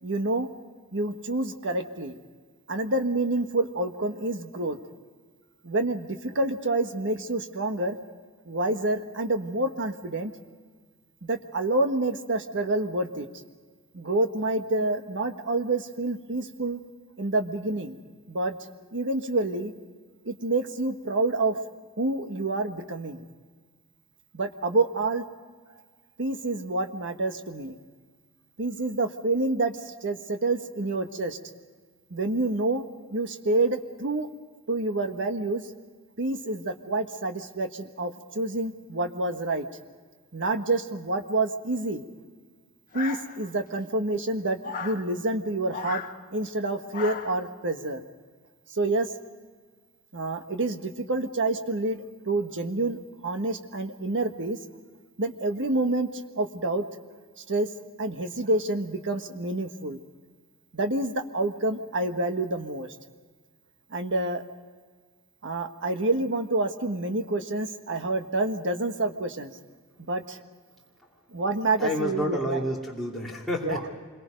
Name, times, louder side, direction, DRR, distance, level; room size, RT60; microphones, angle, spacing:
voice 1, 0.0-0.5 0.9-2.2 2.7-4.8 5.6-8.0 8.4-10.3 11.2-13.3 13.9-16.8 17.2-18.0 18.3-18.6 18.9-19.7 20.2-21.6 22.0-23.2 24.3-25.2 25.7-25.8 26.2-27.8 28.6-31.4 32.1-32.8 33.1-34.3 34.7-35.6 36.2-39.7 40.3-42.0 42.9-46.0 46.3-48.0 48.7-49.1 50.1-54.6 55.2-56.8 57.5-57.7 58.0-60.0 60.7-62.9 63.9-64.4 65.4-69.5 70.1-70.4 71.3-72.6 73.6-73.9, right 2 dB, 55° right, 6 dB, 1.5 m, -28 dB
sound 1, 42.9-43.7 44.6-45.0 45.7-46.1 46.9-47.4, left 5 dB, 40° left, 1.4 m, -35 dB
voice 2, 71.8-73.9, left 1 dB, ahead, -5 dB, 2.7 m, -29 dB
27.0 x 22.5 x 5.2 m, 1.5 s
head